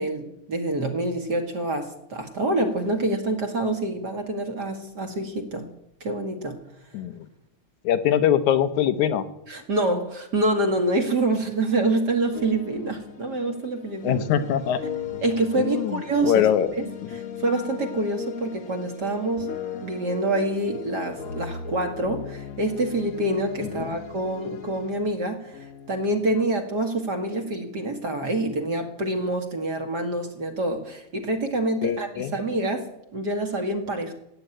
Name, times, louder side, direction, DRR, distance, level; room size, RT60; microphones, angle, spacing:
voice 1, 0.0-5.6 6.0-6.6 9.5-14.2 15.2-19.5 19.8-34.1, right 2 dB, 40° right, 4 dB, 2.1 m, -26 dB
voice 2, 7.8-9.3 14.0-14.8 15.6-16.7 23.6-24.0 31.8-32.3, left 10 dB, 85° left, 10 dB, 2.4 m, -23 dB
sound 1, 12.3-26.4, left 6 dB, 55° left, 1.9 m, -38 dB
16.5 x 9.5 x 9.0 m, 0.81 s
omnidirectional pair, 3.3 m